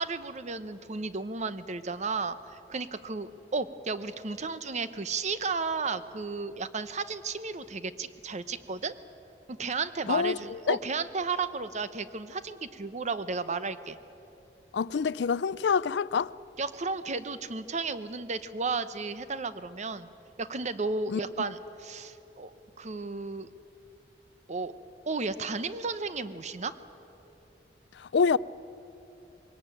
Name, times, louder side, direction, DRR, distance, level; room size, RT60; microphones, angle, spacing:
voice 1, 0.0-8.9 9.5-14.0 16.6-20.1 20.4-23.5 24.5-24.7 25.0-26.8, right 4 dB, 40° right, 0.8 m, -33 dB
voice 2, 10.1-10.8 14.7-16.3 21.1-21.2 28.0-28.4, left 5 dB, 70° left, 0.4 m, -26 dB
22.0 x 18.0 x 9.0 m
head